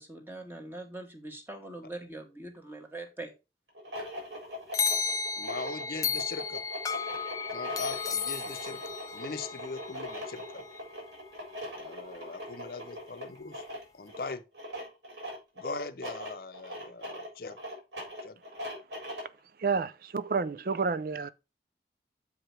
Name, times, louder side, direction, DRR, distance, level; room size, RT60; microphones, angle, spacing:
voice 1, 0.0-3.3, right 2 dB, 10° right, 1.3 m, -42 dB
sound 1, 3.7-19.4, equal, 90° right, 3.9 m, -41 dB
sound 2, 4.7-10.9, left 6 dB, 20° left, 0.4 m, -34 dB
voice 2, 5.4-6.6 7.5-10.6 11.6-13.6 13.9-14.4 15.6-17.6 18.2-18.4, left 3 dB, 55° left, 0.7 m, -40 dB
voice 3, 19.6-21.3, right 5 dB, 50° right, 0.5 m, -30 dB
7.2 x 5.0 x 4.4 m
head